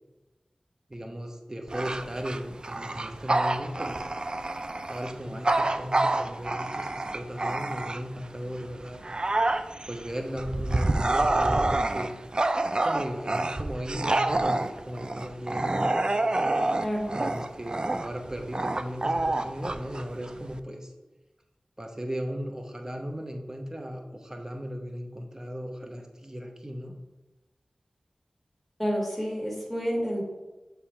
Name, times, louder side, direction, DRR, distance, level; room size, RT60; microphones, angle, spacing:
voice 1, 0.9-4.0 4.9-9.0 9.9-12.1 12.8-16.3 17.1-20.9 21.8-27.0, equal, 25° right, 3 dB, 0.9 m, -36 dB
Bark / Growling, 1.7-8.2 8.7-20.6, right 2 dB, 40° right, 0.3 m, -27 dB
voice 2, 16.8-17.2 28.8-30.2, equal, ahead, -2 dB, 1.8 m, -29 dB
6.9 x 3.4 x 4.4 m, 1.1 s
cardioid pair, 40°, 2 cm